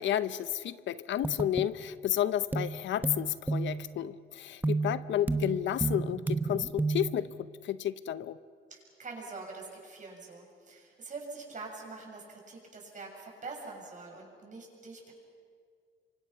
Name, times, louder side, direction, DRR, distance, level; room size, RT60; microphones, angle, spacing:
voice 1, 0.0-8.4, left 11 dB, 70° left, 15 dB, 0.7 m, -31 dB
sound 1, 1.2-1.7 2.5-2.8 3.0-4.0 4.6-7.2, right 3 dB, 10° right, 1.1 m, -32 dB
voice 2, 8.7-15.1, right 3 dB, 40° right, 0 dB, 7.4 m, -44 dB
28.5 x 24.5 x 6.0 m, 2.1 s
cardioid pair, 90°, 20 cm